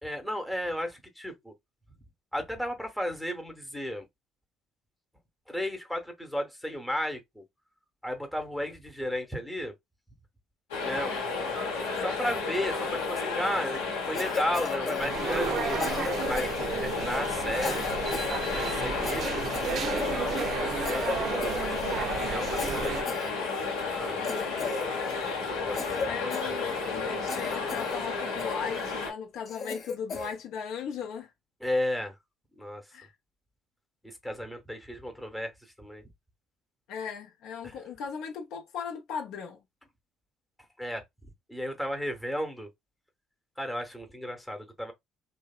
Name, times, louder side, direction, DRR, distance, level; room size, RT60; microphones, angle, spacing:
voice 1, 0.0-1.5 2.3-4.1 5.5-7.5 8.0-9.8 10.8-11.1 11.9-15.8 16.2-17.9 18.7-23.2 23.9-24.8 25.4-26.2 26.5-27.0 30.2-30.3 31.6-32.2 32.6-33.0 34.0-36.0 37.6-37.8 40.8-42.7 43.6-44.9, left 1 dB, 5° left, 0.8 m, -34 dB
sound 1, 10.7-29.1, left 4 dB, 85° left, 0.9 m, -32 dB
Cough, 14.1-15.6 15.8-17.1 17.6-18.4 18.6-18.8 19.0-20.6 20.8-21.2 21.4-22.1 22.6-23.8 24.2-25.3 25.7-27.0 27.3-28.0 28.4-28.9 29.5-30.4, left 4 dB, 50° left, 0.9 m, -36 dB
sound 2, 15.0-23.0, right 6 dB, 55° right, 0.4 m, -33 dB
voice 2, 24.2-24.6 26.0-31.3 32.9-33.1 36.9-39.6, left 7 dB, 70° left, 0.6 m, -37 dB
2.7 x 2.1 x 2.3 m
hypercardioid pair, 60°, 0 cm